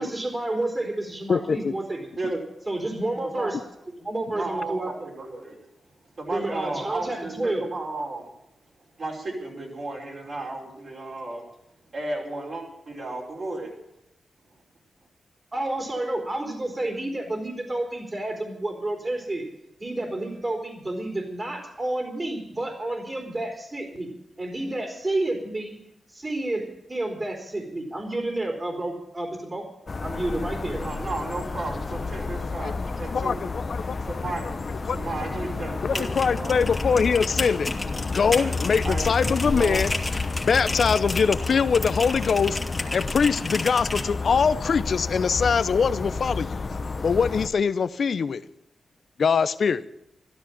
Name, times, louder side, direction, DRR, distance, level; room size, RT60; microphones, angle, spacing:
voice 1, 0.0-2.4 2.7-3.6 4.0-4.9 6.3-7.6 15.5-19.5 19.8-24.1 24.4-25.8 26.1-29.7 30.0-30.8, right 2 dB, 30° right, 1 dB, 3.7 m, -30 dB
voice 2, 1.3-1.7 32.6-32.7 33.1-33.9 34.9-35.0 35.8-37.7 38.1-39.9 40.4-42.6 42.9-46.6 47.0-48.4 49.2-49.8, left 6 dB, 65° left, 15 dB, 0.7 m, -23 dB
voice 3, 4.3-5.6 6.2-8.3 9.0-11.4 11.9-13.7 30.8-33.4 34.1-34.5 34.9-36.6 38.4-38.5 38.8-39.1 39.5-39.8, right 2 dB, 55° right, -3 dB, 5.5 m, -33 dB
sound 1, 29.9-47.5, left 3 dB, 45° left, 1.2 m, -31 dB
sound 2, 35.7-44.1, left 2 dB, 25° left, 2.2 m, -33 dB
13.5 x 12.5 x 7.0 m, 0.82 s
cardioid pair, 60°, 0 cm